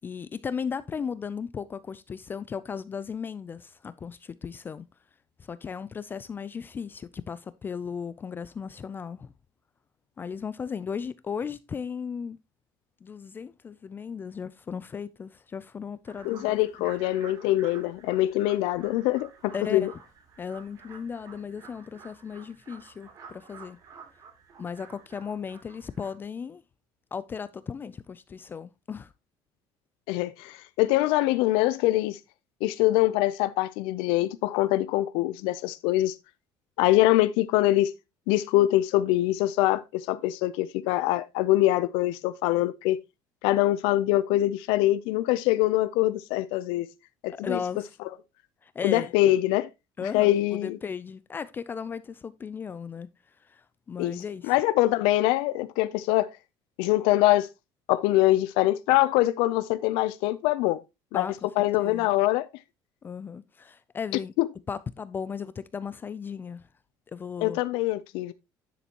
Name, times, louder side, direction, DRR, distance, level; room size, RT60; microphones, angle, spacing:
voice 1, 0.0-4.9 5.4-9.3 10.2-12.4 13.0-16.6 19.5-19.9 20.4-23.8 24.6-26.6 27.1-29.1 47.3-47.9 48.6-49.1 50.0-53.1 53.4-54.5 61.1-62.2 63.0-64.3 64.7-66.7 67.1-67.6, left 6 dB, 25° left, 0.4 m, -36 dB
sound 1, 16.1-26.1, right 5 dB, 45° right, 2.9 m, -51 dB
voice 2, 16.2-19.9 30.1-32.2 32.6-36.2 36.8-37.9 38.3-43.0 43.4-46.9 47.2-47.6 48.8-49.7 50.0-50.8 54.0-56.3 56.8-57.5 57.9-60.8 61.1-61.3 61.6-62.5 64.4-64.5 67.4-68.3, left 16 dB, 90° left, 0.5 m, -24 dB
10.0 x 6.8 x 2.9 m
cardioid pair, 145°, 9 cm